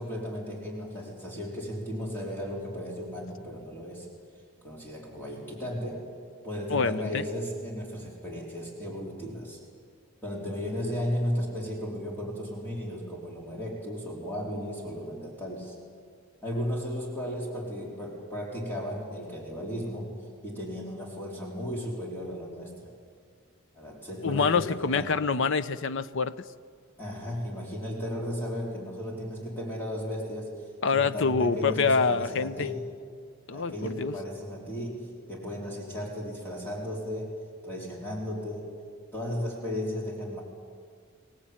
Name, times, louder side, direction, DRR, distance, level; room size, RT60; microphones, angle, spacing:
voice 1, 0.0-4.1 4.6-6.0 6.4-9.6 10.2-15.8 16.4-20.1 20.4-22.9 23.7-25.1 27.0-30.6 30.9-32.9 33.5-37.3 37.6-38.7 39.1-40.4, equal, 10° left, -3 dB, 4.4 m, -35 dB
voice 2, 6.7-7.2 24.2-26.3 30.8-32.7 33.5-34.1, left 5 dB, 60° left, 13 dB, 0.7 m, -26 dB
25.0 x 18.5 x 8.8 m, 2.1 s
head